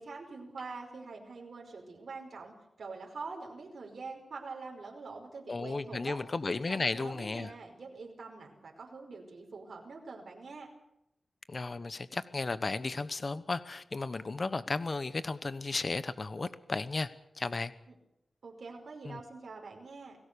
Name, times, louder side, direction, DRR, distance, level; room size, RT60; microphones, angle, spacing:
voice 1, 0.0-6.2 6.7-10.7 17.9-18.0 18.4-20.2, right 4 dB, 65° right, 0 dB, 5.2 m, -45 dB
voice 2, 5.5-7.5 11.5-17.1 17.4-17.7 19.0-19.2, left 3 dB, 40° left, 13 dB, 1.1 m, -34 dB
29.5 x 19.0 x 6.9 m, 0.81 s
wide cardioid pair, 145°, 0 cm